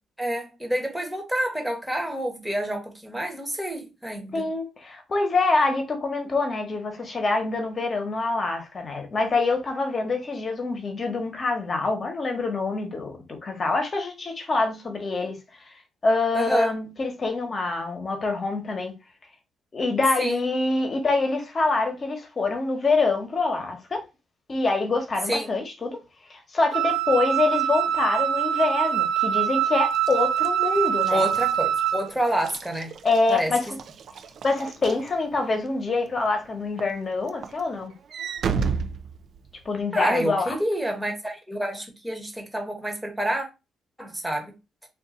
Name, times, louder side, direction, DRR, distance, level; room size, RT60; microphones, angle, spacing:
voice 1, 0.2-4.5 16.3-16.7 20.2-20.4 25.3-25.5 31.1-32.9 33.3-33.5 39.9-43.5 44.0-44.6, right 1 dB, 5° right, 1.1 m, -28 dB
voice 2, 4.3-15.4 16.0-18.9 19.7-24.0 24.5-26.0 26.3-31.3 33.0-33.6 34.4-37.9 39.6-40.6, left 3 dB, 35° left, 1.1 m, -25 dB
Wind instrument woodwind instrument, 26.7-32.1, right 10 dB, 85° right, 1.1 m, -24 dB
Walk footsteps / Slam, 29.9-35.7 36.2-36.5 36.8-39.8, right 5 dB, 65° right, 0.4 m, -33 dB
2.6 x 2.5 x 3.8 m
cardioid pair, 90°, 0 cm